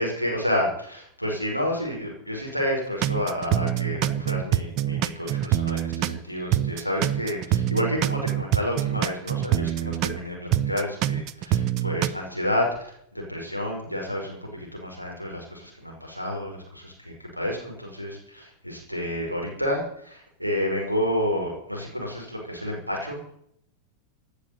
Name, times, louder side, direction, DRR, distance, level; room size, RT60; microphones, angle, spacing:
voice 1, 0.0-16.9 17.4-23.3, equal, 90° right, 0 dB, 5.5 m, -30 dB
sound 1, 3.0-6.2 6.5-10.2 10.5-12.1, right 12 dB, 40° right, 0.8 m, -25 dB
16.5 x 9.9 x 8.4 m, 0.67 s
figure-of-eight pair, 90°, 0 cm